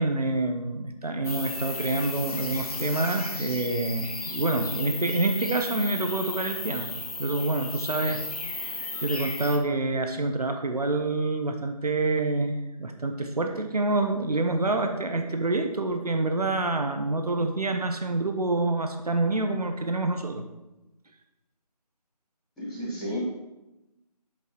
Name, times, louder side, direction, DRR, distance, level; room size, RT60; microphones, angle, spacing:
voice 1, 0.0-6.9 7.2-8.2 8.5-20.4, right 2 dB, 65° right, 5 dB, 1.0 m, -27 dB
sound 1, 1.2-9.6, left 3 dB, 60° left, 1.3 m, -35 dB
voice 2, 22.6-23.2, equal, ahead, -23 dB, 0.8 m, -32 dB
7.8 x 7.5 x 4.5 m, 0.97 s
figure-of-eight pair, 170°, 21 cm